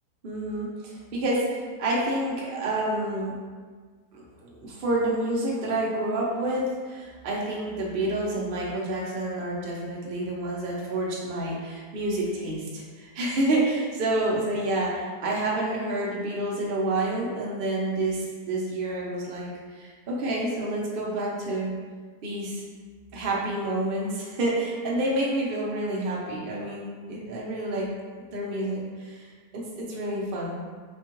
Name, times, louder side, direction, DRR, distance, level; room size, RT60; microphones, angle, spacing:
voice 1, 0.2-3.3 4.1-19.5 19.8-21.7 22.2-22.6 23.1-27.9 28.3-29.3 29.5-30.6, right 1 dB, 55° right, -4 dB, 0.6 m, -28 dB
4.3 x 2.3 x 3.0 m, 1.5 s
omnidirectional pair, 1.8 m